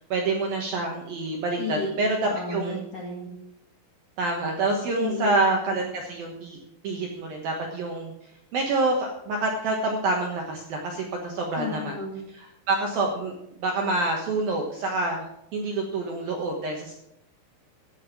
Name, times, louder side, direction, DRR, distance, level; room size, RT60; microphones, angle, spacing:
voice 1, 0.1-2.2 2.5-2.8 4.2-6.6 6.8-8.1 8.5-12.0 12.3-13.3 13.6-15.2 15.5-16.9, right 2 dB, 70° right, 1 dB, 2.3 m, -27 dB
voice 2, 1.6-1.9 2.2-3.4 5.0-5.4 11.6-12.2, left 3 dB, 60° left, -2 dB, 1.6 m, -32 dB
15.0 x 7.0 x 6.1 m, 0.79 s
omnidirectional pair, 6.0 m